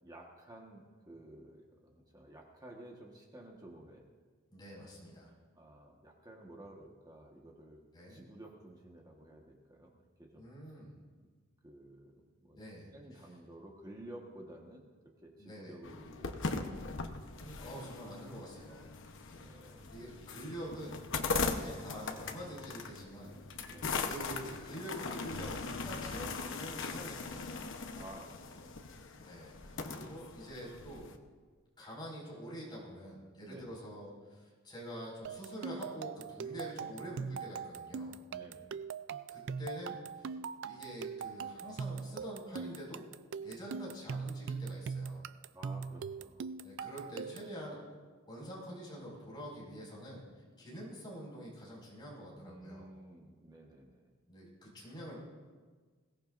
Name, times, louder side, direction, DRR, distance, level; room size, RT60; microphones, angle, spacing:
voice 1, 0.0-4.1 5.5-7.8 8.1-10.4 11.6-12.6 12.9-14.8 15.2-16.6 19.2-19.9 23.7-24.0 27.9-28.8 33.4-33.8 38.3-38.7 45.5-46.5 52.4-54.1, right 1 dB, 20° right, -1 dB, 1.4 m, -53 dB
voice 2, 4.5-5.3 7.9-8.2 10.4-10.9 12.5-12.9 15.4-15.8 17.3-18.8 19.9-23.4 23.6-23.7 24.0-27.7 29.2-31.1 31.8-38.2 39.3-40.3 40.7-43.0 43.4-45.2 46.6-47.9 48.3-50.2 50.6-52.9 54.3-55.2, equal, 20° left, -4 dB, 5.4 m, -46 dB
sound 1, 15.8-31.2, left 4 dB, 65° left, 1.0 m, -40 dB
sound 2, 35.2-47.6, right 5 dB, 60° right, 0.4 m, -41 dB
21.5 x 17.5 x 2.6 m, 1.5 s
head